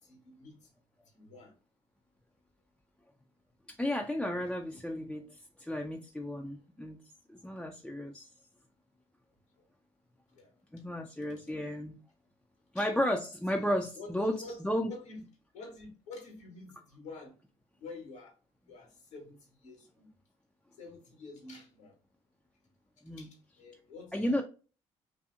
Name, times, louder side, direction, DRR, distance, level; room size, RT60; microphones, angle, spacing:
voice 1, 0.0-0.7 1.1-1.6 10.3-10.5 11.2-11.6 12.7-12.9 13.5-13.7 14.0-14.6 14.8-15.2 15.5-17.3 17.8-18.3 18.7-20.1 20.8-21.9 23.2-24.4, left 3 dB, 85° left, 1 dB, 1.1 m, -48 dB
voice 2, 3.8-5.2 5.6-7.0 7.3-8.3 10.7-12.0 12.7-14.9 23.0-23.3 24.1-24.4, equal, 5° left, 2 dB, 0.4 m, -33 dB
2.6 x 2.6 x 2.4 m, 0.34 s
hypercardioid pair, 50°, 16 cm